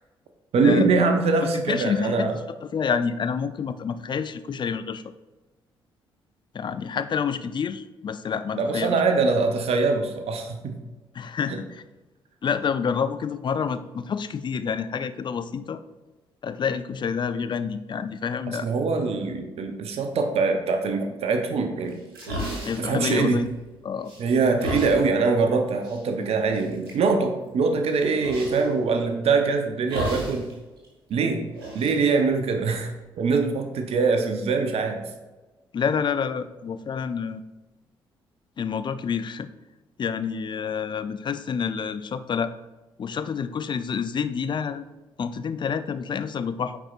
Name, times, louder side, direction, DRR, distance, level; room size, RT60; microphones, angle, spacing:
voice 1, 0.5-2.4 8.6-10.8 11.5-11.6 18.5-22.0 22.8-23.5 24.2-30.5 31.1-31.4 31.7-35.0, right 4 dB, 55° right, 5 dB, 0.7 m, -23 dB
voice 2, 1.5-2.3 2.6-5.0 6.5-9.0 11.1-11.8 12.4-15.8 16.4-18.7 22.7-23.4 23.8-24.1 35.7-37.4 38.6-39.5 40.0-42.5 43.0-44.8 45.2-46.8, left 6 dB, 40° left, 12 dB, 0.5 m, -28 dB
sound 1, 21.9-23.7 24.0-25.0 25.8-26.0 26.5-27.0 28.2-28.7 29.9-30.5 30.8-30.9 31.5-33.0, equal, 85° right, 1.3 m, -33 dB
9.1 x 4.4 x 2.4 m, 1.2 s
hypercardioid pair, 45°, 12 cm